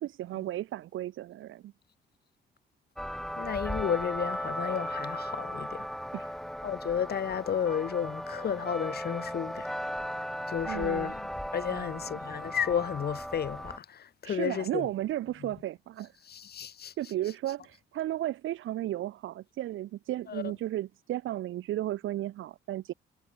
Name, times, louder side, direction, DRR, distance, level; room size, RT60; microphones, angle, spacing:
voice 1, 0.0-1.7 6.1-6.3 10.6-11.1 11.7-12.2 14.2-16.2 17.0-22.9, right 14 dB, 80° right, 3.3 m, -34 dB
sound 1, 3.0-13.8, equal, ahead, 2.3 m, -36 dB
voice 2, 3.4-5.9 6.6-9.8 10.5-14.9 16.3-16.9 20.3-20.4, left 8 dB, 55° left, 2.4 m, -32 dB
cardioid pair, 90°, 20 cm